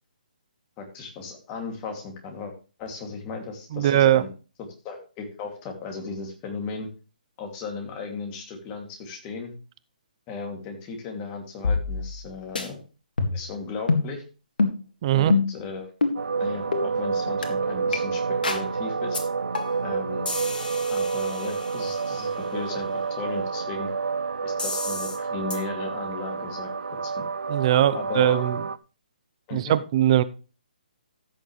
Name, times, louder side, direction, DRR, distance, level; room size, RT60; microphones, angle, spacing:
voice 1, 0.8-2.5 2.8-4.3 4.8-6.9 7.4-9.5 10.3-12.8 13.3-14.2 15.1-15.9 16.4-19.2 19.8-20.3 20.9-23.9 24.4-26.7 27.0-27.2 27.9-28.5 29.5-29.8, left 4 dB, 25° left, 3 dB, 2.7 m, -36 dB
voice 2, 3.7-4.2 15.0-15.3 27.5-28.6 29.5-30.2, right 12 dB, 40° right, 15 dB, 0.7 m, -20 dB
sound 1, 11.6-12.3 12.6-12.7 13.2-13.5 13.9-14.1 14.6-14.8 15.3-15.6 16.0-16.2 16.7-16.9 17.4-17.5 17.9-18.0 18.4-18.7 19.1-19.2 19.5-19.9 20.3-22.1 24.6-25.2 25.5-25.6, left 4 dB, 75° left, 2.2 m, -27 dB
sound 2, 16.2-28.8, right 5 dB, 85° right, 0.6 m, -29 dB
15.0 x 6.5 x 3.3 m, 0.34 s
hypercardioid pair, 150°, 5 cm